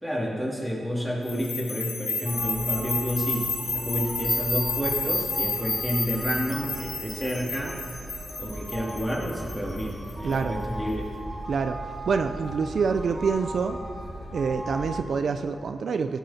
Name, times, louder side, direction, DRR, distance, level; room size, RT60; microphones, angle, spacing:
voice 1, 0.0-7.8 8.4-11.1, equal, 5° left, -4 dB, 2.7 m, -30 dB
sound 1, 1.3-10.3, left 3 dB, 50° left, 2.3 m, -31 dB
sound 2, 2.2-15.0, right 1 dB, 25° right, 2.2 m, -38 dB
voice 2, 10.2-10.6 11.5-11.8 12.1-13.8 14.3-16.2, right 5 dB, 70° right, 8 dB, 0.4 m, -26 dB
16.0 x 8.2 x 4.2 m, 2.6 s
wide cardioid pair, 100°, 0 cm